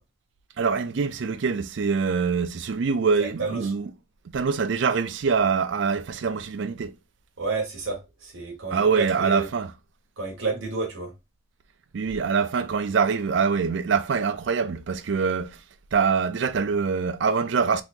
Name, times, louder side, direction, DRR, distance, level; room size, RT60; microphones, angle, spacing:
voice 1, 0.6-3.9 4.3-6.9 8.7-9.7 11.9-15.6 15.9-17.8, right 5 dB, 65° right, 0.4 m, -24 dB
voice 2, 3.2-3.7 7.4-9.5 10.2-11.1, right 4 dB, 80° right, 1.2 m, -30 dB
3.6 x 2.9 x 2.5 m
head